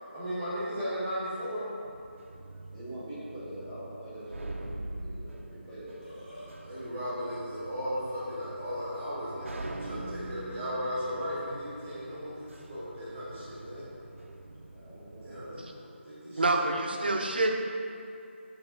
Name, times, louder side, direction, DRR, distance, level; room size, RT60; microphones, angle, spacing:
voice 1, 0.1-1.6 6.6-13.8 15.2-15.8 16.0-17.2, equal, 10° right, -11 dB, 1.0 m, -36 dB
sound 1, 1.8-15.5, right 2 dB, 90° right, 0.6 m, -44 dB
voice 2, 2.5-6.4 14.4-15.3, right 1 dB, 5° left, -13 dB, 1.3 m, -44 dB
Burping eructation, 5.7-6.5, equal, 30° left, 1.2 m, -48 dB
voice 3, 16.3-17.5, right 2 dB, 50° right, 2 dB, 0.7 m, -27 dB
6.9 x 3.4 x 5.6 m, 2.5 s
figure-of-eight pair, 180°, 7 cm